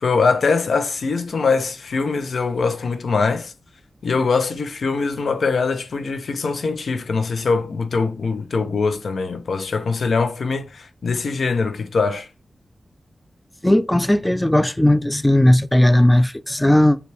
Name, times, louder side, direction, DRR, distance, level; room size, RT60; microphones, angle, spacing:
voice 1, 0.0-3.5 4.0-12.3, left 4 dB, 80° left, 0.6 m, -22 dB
voice 2, 13.6-17.0, left 1 dB, 10° left, 0.3 m, -16 dB
6.9 x 2.3 x 3.3 m
wide cardioid pair, 125°, 0 cm